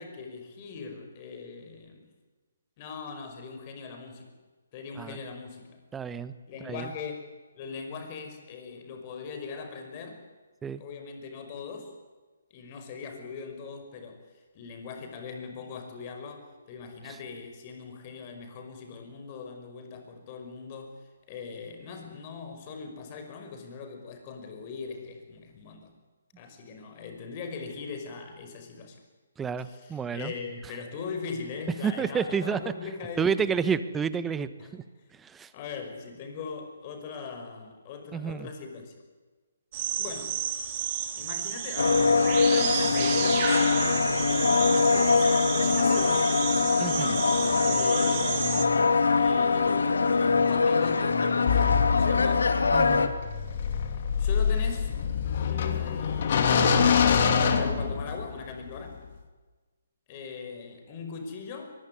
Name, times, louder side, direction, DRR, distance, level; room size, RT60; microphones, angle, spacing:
voice 1, 0.0-2.1 2.8-4.3 4.7-5.8 6.5-7.3 7.5-10.2 10.8-11.9 12.5-14.2 14.5-20.9 21.3-25.9 26.4-29.0 29.6-33.5 34.6-34.8 35.5-38.9 40.0-40.4 41.2-42.1 42.4-43.5 44.2-46.4 47.7-48.5 49.2-52.5 54.2-55.0 55.4-59.0 60.1-61.7, left 5 dB, 30° left, 6 dB, 5.6 m, -40 dB
voice 2, 5.9-6.3 6.6-6.9 10.6-10.8 29.4-30.3 31.8-32.6 33.2-34.8 35.2-35.5 38.1-38.5 46.8-47.2 52.7-53.1, right 6 dB, 10° right, 14 dB, 1.1 m, -30 dB
sound 1, 39.7-48.6, right 9 dB, 35° right, 3.3 m, -32 dB
sound 2, 41.8-53.1, left 4 dB, 70° left, 2.5 m, -23 dB
sound 3, 51.5-58.4, left 6 dB, 45° left, 3.0 m, -25 dB
23.5 x 21.5 x 9.7 m, 1.3 s
figure-of-eight pair, 140°, 0 cm